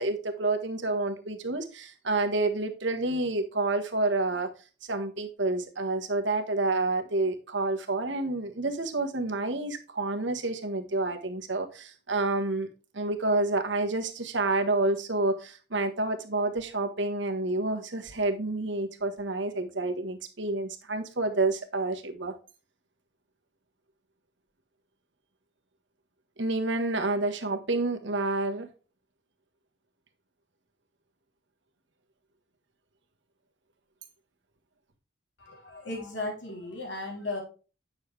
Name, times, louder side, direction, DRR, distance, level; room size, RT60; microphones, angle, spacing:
voice 1, 0.0-4.5 4.8-12.7 12.9-22.3 26.4-28.7, right 2 dB, 70° right, 5 dB, 1.4 m, -29 dB
voice 2, 35.4-37.4, left 2 dB, 65° left, 0 dB, 3.3 m, -36 dB
9.5 x 6.5 x 3.3 m, 0.34 s
head